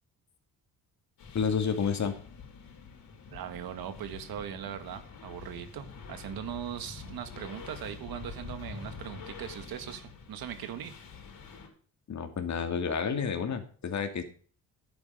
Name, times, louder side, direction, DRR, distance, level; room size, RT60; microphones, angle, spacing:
sound 1, 1.2-11.7, left 5 dB, 75° left, 4.5 m, -46 dB
voice 1, 1.3-2.1 12.1-14.2, left 6 dB, 50° left, 6 dB, 2.5 m, -30 dB
voice 2, 3.3-10.9, right 10 dB, 80° right, 10 dB, 1.7 m, -40 dB
11.0 x 8.9 x 5.0 m, 0.43 s
cardioid pair, 85°, 36 cm